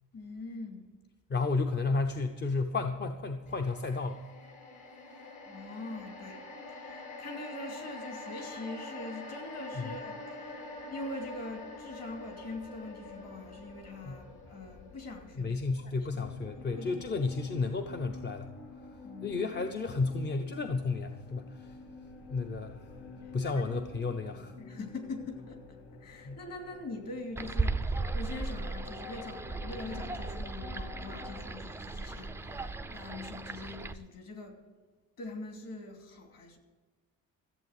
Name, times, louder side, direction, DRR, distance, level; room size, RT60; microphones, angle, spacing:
voice 1, 0.1-0.9 5.3-6.4 6.7-16.2 16.8-17.0 19.0-19.4 23.2-23.6 24.6-34.6 35.2-36.6, left 2 dB, 45° left, 4 dB, 2.8 m, -43 dB
voice 2, 1.3-4.2 9.7-9.9 14.0-14.2 15.4-18.5 19.2-21.8 22.3-22.8 23.3-24.5 26.2-26.4, left 3 dB, 30° left, 6 dB, 0.7 m, -32 dB
sound 1, 3.5-17.8 18.2-18.3, left 2 dB, 60° left, 3.9 m, -46 dB
sound 2, 16.2-31.5, left 4 dB, 80° left, 2.1 m, -49 dB
sound 3, 27.3-33.9, right 3 dB, 10° right, 0.4 m, -36 dB
14.0 x 8.2 x 7.9 m, 1.3 s
cardioid pair, 165°, 35 cm